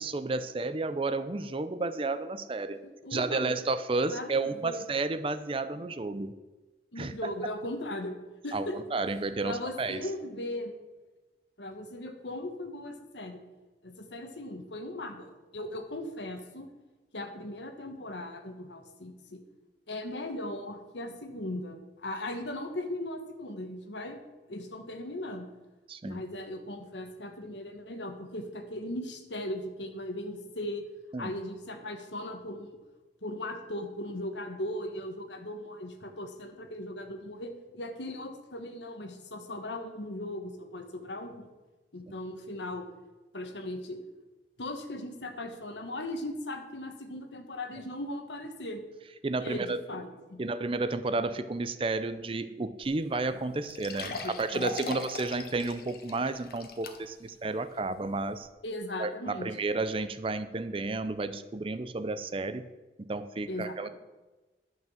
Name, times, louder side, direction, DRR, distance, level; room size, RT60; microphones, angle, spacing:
voice 1, 0.0-2.8 3.1-6.3 7.0-7.3 8.5-10.1 25.9-26.2 31.1-31.4 49.2-49.8 50.4-58.5 59.0-62.7 63.0-63.9, right 3 dB, 30° right, 12 dB, 0.5 m, -32 dB
voice 2, 3.0-3.6 4.0-4.8 6.9-8.2 8.4-8.7 9.4-10.7 11.6-13.4 13.8-16.7 17.1-19.4 19.9-24.2 24.5-25.5 26.0-30.9 31.2-32.8 33.2-41.5 41.9-42.9 43.3-44.0 44.6-48.8 49.4-50.4 54.0-55.3 58.6-59.6 63.5-63.9, left 1 dB, 90° left, 6 dB, 1.5 m, -38 dB
sound 1, 52.8-52.9 53.2-53.3 53.7-57.3 57.8-57.9 58.4-58.5, left 3 dB, 55° left, 1.2 m, -40 dB
11.5 x 6.1 x 7.3 m, 1.2 s
head